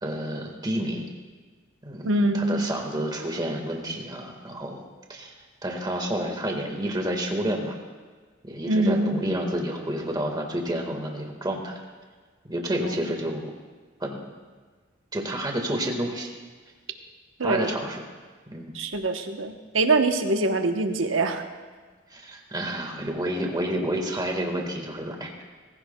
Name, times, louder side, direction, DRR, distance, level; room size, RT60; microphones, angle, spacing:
voice 1, 0.0-1.1 1.8-4.8 5.1-5.3 5.6-7.7 8.4-11.8 12.4-13.5 14.0-14.3 15.1-16.3 17.4-18.0 18.5-18.8 22.1-25.4, right 1 dB, 20° right, 2 dB, 1.6 m, -30 dB
voice 2, 2.0-2.7 8.7-9.2 17.4-17.7 18.7-21.5, right 2 dB, 75° right, 5 dB, 1.0 m, -24 dB
20.0 x 15.5 x 2.3 m, 1.5 s
head